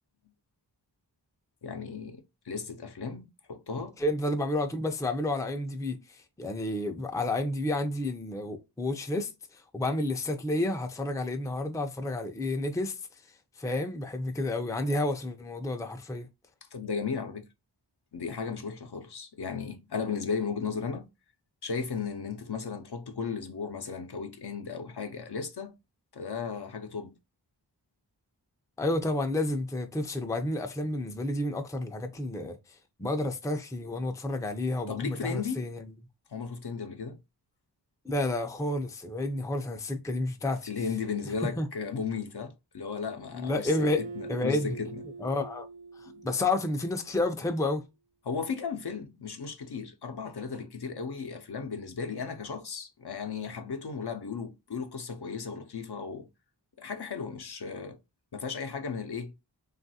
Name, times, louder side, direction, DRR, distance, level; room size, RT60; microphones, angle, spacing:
voice 1, 1.6-4.0 16.6-17.5 18.1-21.1 21.6-25.7 26.1-27.1 34.9-35.6 36.3-37.2 40.7-43.7 44.0-45.0 46.1-46.2 48.3-56.3 56.8-58.0 58.3-59.3, left 5 dB, 60° left, 0.6 m, -35 dB
voice 2, 4.0-13.0 13.6-16.3 28.8-35.8 38.0-40.7 41.4-41.7 43.3-44.0 44.3-44.8 45.2-45.7 46.0-47.8, left 2 dB, 10° left, 0.4 m, -30 dB
Acoustic guitar, 43.7-47.1, right 4 dB, 85° right, 0.6 m, -42 dB
3.0 x 2.4 x 2.7 m
wide cardioid pair, 40°, 44 cm